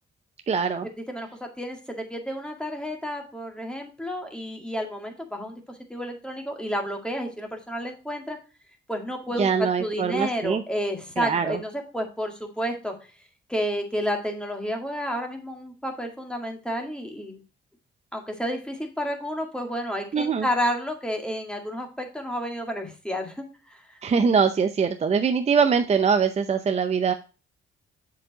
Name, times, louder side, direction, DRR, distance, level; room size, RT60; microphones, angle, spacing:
voice 1, 0.5-0.9 9.4-10.6 11.2-11.6 20.1-20.5 24.0-27.1, right 6 dB, 35° right, 8 dB, 0.6 m, -23 dB
voice 2, 1.6-8.4 8.9-13.1 13.5-17.4 18.1-23.8, equal, 5° left, 3 dB, 1.9 m, -31 dB
7.3 x 4.8 x 3.9 m, 0.32 s
cardioid pair, 90°, 20 cm